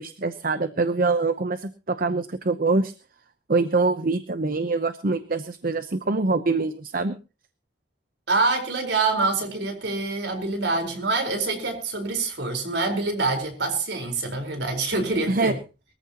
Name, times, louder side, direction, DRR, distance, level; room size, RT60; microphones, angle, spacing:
voice 1, 0.0-2.9 3.5-7.2 15.3-15.5, right 3 dB, 50° right, 0.8 m, -24 dB
voice 2, 8.3-15.5, right 3 dB, 65° right, 4.4 m, -26 dB
22.5 x 14.5 x 3.0 m
head